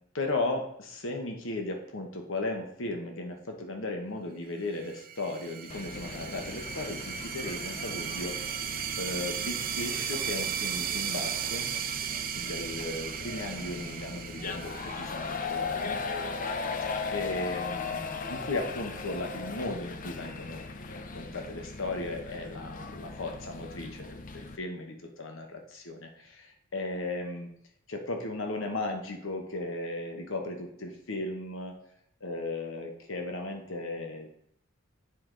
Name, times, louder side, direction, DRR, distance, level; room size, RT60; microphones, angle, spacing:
voice 1, 0.1-8.6 9.0-11.7 12.4-16.0 17.1-27.5 27.9-31.7 32.2-34.3, left 2 dB, 65° left, 3 dB, 1.0 m, -36 dB
sound 1, 4.8-16.1, right 9 dB, 45° right, 0.5 m, -36 dB
sound 2, 5.7-24.6, left 4 dB, 40° left, 0.5 m, -38 dB
8.7 x 4.6 x 3.8 m, 0.69 s
head